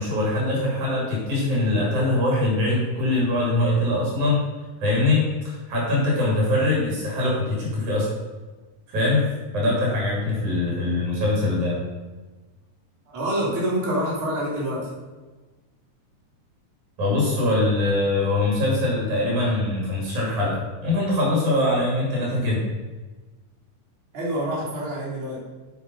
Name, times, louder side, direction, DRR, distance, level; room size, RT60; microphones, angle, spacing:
voice 1, 0.0-4.4 4.8-8.1 8.9-9.2 9.5-11.8 17.0-22.6, left 2 dB, 65° right, -4 dB, 4.2 m, -22 dB
voice 2, 13.1-14.8 24.1-25.4, right 1 dB, 40° right, -7 dB, 3.9 m, -26 dB
8.4 x 7.7 x 5.4 m, 1.3 s
omnidirectional pair, 3.8 m